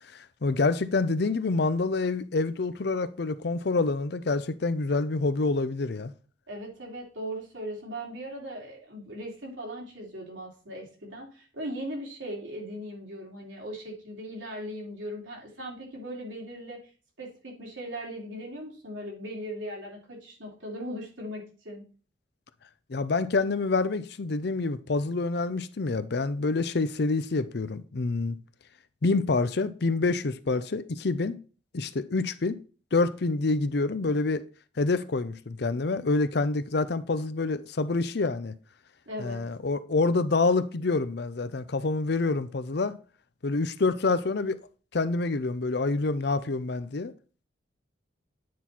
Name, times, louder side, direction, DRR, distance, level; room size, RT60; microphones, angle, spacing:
voice 1, 0.1-6.1 22.9-28.3 29.0-31.4 31.7-32.6 32.9-34.4 34.8-38.5 39.2-43.0 43.4-44.6 44.9-47.1, left 3 dB, 60° left, 0.6 m, -27 dB
voice 2, 6.5-16.8 17.2-21.8 39.1-39.4, equal, 85° right, 3.2 m, -38 dB
9.3 x 4.2 x 4.4 m
head